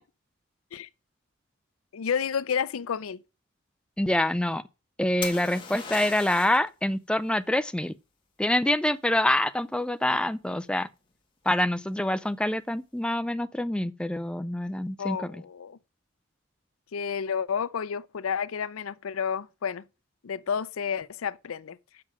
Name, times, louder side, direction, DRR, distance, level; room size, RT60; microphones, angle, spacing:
voice 1, 1.9-3.2 15.0-15.8 16.9-19.8 20.2-21.8, left 7 dB, 85° left, 0.5 m, -30 dB
voice 2, 4.0-4.6 5.0-7.9 8.4-10.9 11.5-15.4, left 1 dB, 5° left, 0.4 m, -26 dB
sound 1, 5.2-6.7 10.3-10.8, left 5 dB, 25° left, 1.7 m, -38 dB
7.6 x 6.2 x 6.1 m
head